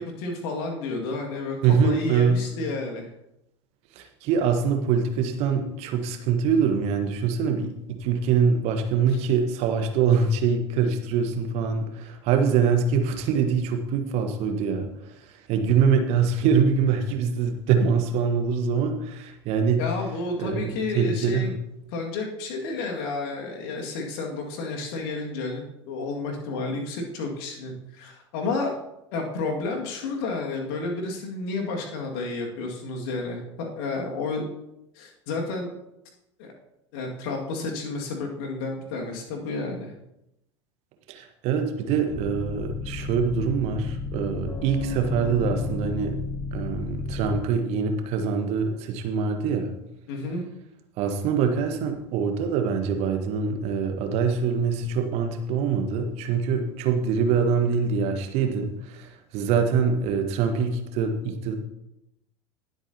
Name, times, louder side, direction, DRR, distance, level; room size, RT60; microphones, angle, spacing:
voice 1, 0.0-1.6 1.8-3.1 19.8-21.5 21.9-28.7 29.1-34.5 35.0-35.7 36.4-36.5 36.9-39.9 50.1-50.4, left 3 dB, 55° left, 1 dB, 2.2 m, -31 dB
voice 2, 1.6-2.5 3.9-14.9 15.5-19.8 20.4-21.5 41.1-46.2 46.5-49.7 51.0-61.5, right 6 dB, 45° right, 5 dB, 1.4 m, -24 dB
sound 1, 42.1-47.4, left 3 dB, 15° left, 0.9 m, -33 dB
19.0 x 7.9 x 2.9 m, 0.86 s
figure-of-eight pair, 80°, 15 cm